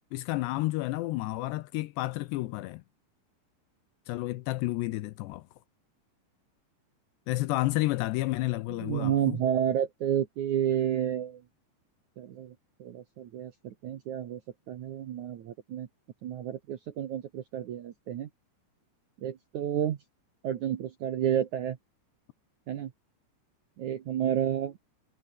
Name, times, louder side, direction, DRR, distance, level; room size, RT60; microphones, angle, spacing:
voice 1, 0.1-2.8 4.1-5.5 7.3-9.4, left 18 dB, 80° left, 2.7 m, -31 dB
voice 2, 8.8-11.4 12.2-12.5 12.8-14.4 14.7-15.9 16.2-18.3 19.2-20.0 20.4-21.8 22.7-22.9 23.8-24.7, right 10 dB, 70° right, 1.8 m, -30 dB
omnidirectional pair, 5.3 m